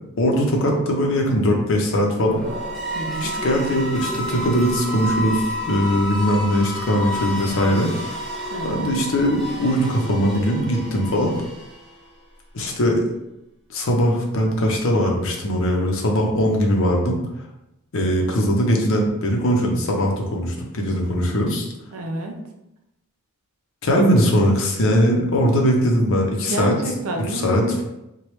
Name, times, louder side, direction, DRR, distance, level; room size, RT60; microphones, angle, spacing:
voice 1, 0.2-2.4 3.2-7.9 8.6-11.3 12.5-13.0 13.7-17.2 17.9-21.7 23.8-26.7 27.3-27.8, equal, 60° left, 1 dB, 0.6 m, -20 dB
sound 1, 2.2-12.2, equal, ahead, 0.5 m, -30 dB
voice 2, 2.9-3.4 8.5-8.9 21.9-22.5 26.5-27.7, right 1 dB, 75° right, 2 dB, 0.5 m, -29 dB
3.0 x 2.2 x 3.0 m, 0.89 s
head